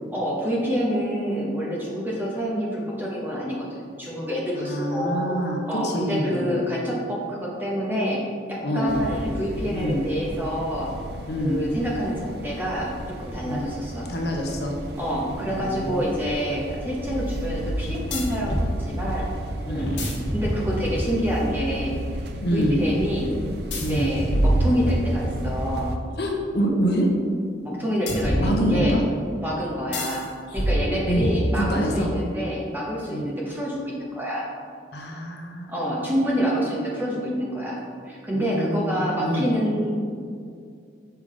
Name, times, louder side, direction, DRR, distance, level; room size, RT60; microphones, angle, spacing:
voice 1, 0.1-8.2 8.5-10.9 11.4-14.1 14.9-19.3 19.7-23.3 23.7-25.9 27.6-29.0 29.4-34.5 35.7-39.9, equal, 10° right, -4 dB, 0.9 m, -27 dB
voice 2, 4.5-6.6 8.6-8.9 9.7-10.0 11.3-11.6 13.4-13.7 14.1-14.7 15.3-16.0 19.6-20.0 22.4-22.8 23.8-24.1 26.2-27.1 28.4-29.0 30.5-30.6 31.1-31.3 31.5-32.1 33.1-33.3 34.9-35.8 38.3-39.5, equal, 60° left, 1 dB, 0.8 m, -26 dB
sound 1, 8.9-26.0, right 1 dB, 60° right, 0.5 m, -33 dB
sound 2, 18.1-18.7 19.8-21.1 23.7-25.4 28.1-29.1 29.9-30.2 30.6-31.9, equal, 75° left, 1.2 m, -26 dB
5.6 x 3.7 x 4.8 m, 2.3 s
head